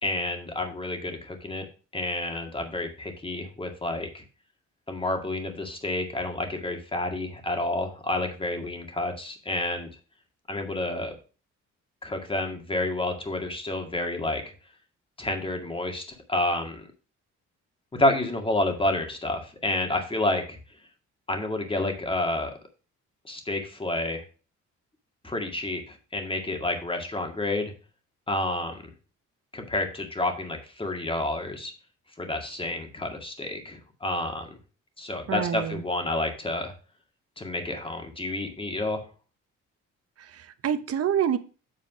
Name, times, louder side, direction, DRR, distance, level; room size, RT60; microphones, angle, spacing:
voice 1, 0.0-1.6 1.9-4.2 4.9-9.9 10.5-11.2 12.0-14.4 15.2-16.9 18.0-20.6 21.3-22.5 23.3-24.2 25.2-27.7 28.3-28.8 29.5-31.7 32.2-34.5 35.0-36.7 37.4-39.0, left 2 dB, 15° left, 4 dB, 2.0 m, -29 dB
voice 2, 35.3-35.8 40.2-41.4, right 9 dB, 50° right, 10 dB, 0.9 m, -27 dB
8.1 x 4.1 x 6.0 m, 0.35 s
cardioid pair, 90°, 30 cm